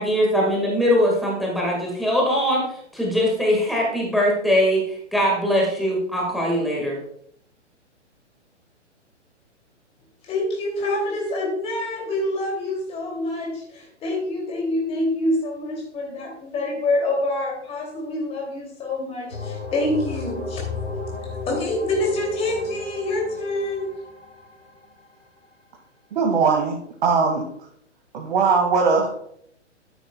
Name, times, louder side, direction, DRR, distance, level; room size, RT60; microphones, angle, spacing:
voice 1, 0.0-7.0, equal, ahead, -3 dB, 1.8 m, -21 dB
voice 2, 10.3-20.7 21.5-23.9, left 1 dB, 15° left, 0 dB, 2.8 m, -26 dB
sound 1, 19.3-25.0, left 3 dB, 85° left, 2.4 m, -34 dB
voice 3, 26.1-27.4 28.1-29.1, right 5 dB, 45° right, -1 dB, 2.1 m, -20 dB
12.0 x 9.7 x 2.3 m, 0.68 s
figure-of-eight pair, 125°, 36 cm